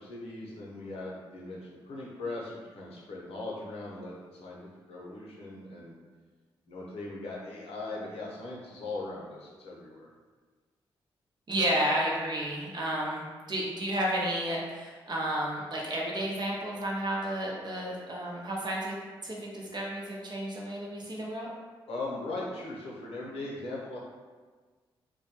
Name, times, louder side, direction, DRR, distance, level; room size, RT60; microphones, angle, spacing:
voice 1, 0.0-5.9 6.7-10.1 21.9-24.0, left 2 dB, 75° left, -4 dB, 0.6 m, -39 dB
voice 2, 11.5-18.9 19.2-21.5, right 1 dB, 45° right, -3 dB, 0.7 m, -32 dB
2.2 x 2.1 x 2.8 m, 1.4 s
supercardioid pair, 50°, 10 cm